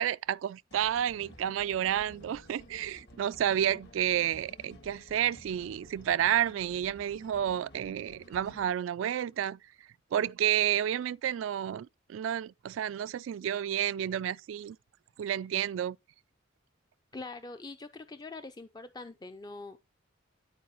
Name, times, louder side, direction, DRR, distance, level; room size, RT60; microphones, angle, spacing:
voice 1, 0.0-9.6 10.1-14.8 15.2-16.0, right 10 dB, 75° right, 0.3 m, -30 dB
sound 1, 0.7-8.7, equal, 60° left, 1.8 m, -53 dB
voice 2, 17.1-19.8, left 3 dB, 20° left, 0.4 m, -43 dB
11.0 x 4.7 x 3.0 m
head